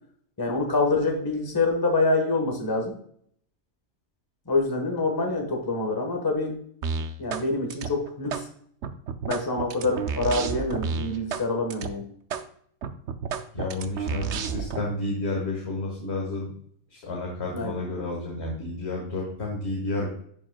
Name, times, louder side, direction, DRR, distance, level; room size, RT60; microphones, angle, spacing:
voice 1, 0.4-3.0 4.5-6.6 7.2-8.5 9.3-12.1 17.5-17.8, left 2 dB, 15° left, 2 dB, 1.1 m, -26 dB
sound 1, 6.8-7.5 7.7-8.4 8.8-11.4 11.7-11.9 12.3-12.4 12.8-14.8, right 6 dB, 60° right, 0.9 m, -31 dB
voice 2, 13.5-16.5 16.9-20.1, left 2 dB, 50° left, -1 dB, 1.9 m, -31 dB
11.0 x 5.1 x 2.2 m, 0.64 s
omnidirectional pair, 1.4 m